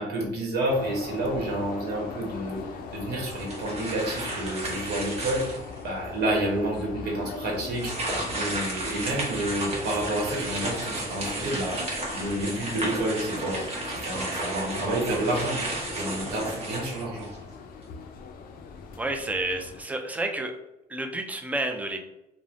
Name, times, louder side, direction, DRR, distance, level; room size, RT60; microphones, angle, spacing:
voice 1, 0.0-5.4 5.8-7.9 8.3-13.6 13.9-15.6 15.9-17.3, right 1 dB, 70° right, -1 dB, 1.0 m, -29 dB
sound 1, 0.7-19.8, left 5 dB, 60° left, 0.4 m, -41 dB
sound 2, 3.3-5.8 6.4-6.5 7.7-17.5, right 1 dB, 35° right, 0.9 m, -33 dB
voice 2, 19.0-20.6 20.9-22.0, right 2 dB, 10° right, 5 dB, 0.3 m, -30 dB
3.1 x 2.0 x 2.5 m, 0.89 s
cardioid pair, 110°, 17 cm